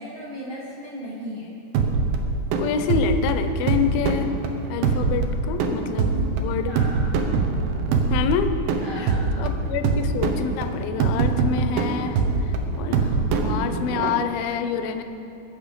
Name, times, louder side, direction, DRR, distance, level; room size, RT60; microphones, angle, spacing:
voice 1, 0.0-1.6 5.8-7.2 8.8-9.5, right 1 dB, 70° right, -6 dB, 1.2 m, -36 dB
sound 1, 1.8-14.1, right 4 dB, 90° right, 3.1 m, -23 dB
voice 2, 2.6-4.3 4.7-6.1 6.4-6.7 8.1-8.6 9.0-9.1 9.4-12.2 12.8-15.0, left 7 dB, 80° left, 8 dB, 2.1 m, -27 dB
20.5 x 7.1 x 5.2 m, 3.0 s
omnidirectional pair, 4.9 m